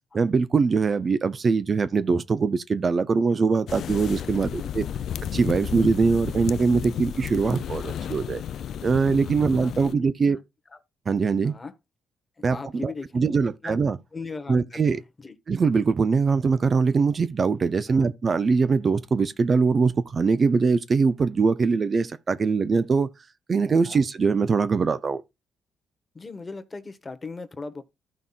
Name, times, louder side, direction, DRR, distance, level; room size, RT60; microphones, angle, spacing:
voice 1, 0.1-4.8 5.3-8.4 8.8-10.4 11.1-11.5 12.4-12.6 12.8-14.0 14.5-15.0 15.5-23.1 23.5-25.2, right 4 dB, 40° right, 0.6 m, -22 dB
sound 1, 3.7-9.9, left 9 dB, 70° left, 0.4 m, -33 dB
voice 2, 9.2-10.4 10.7-10.8 11.4-11.8 12.4-13.4 13.6-13.8 14.1-15.4 17.9-18.1 23.8-24.0 26.1-27.8, left 4 dB, 25° left, 1.2 m, -39 dB
14.5 x 5.5 x 2.4 m
cardioid pair, 100°, 0 cm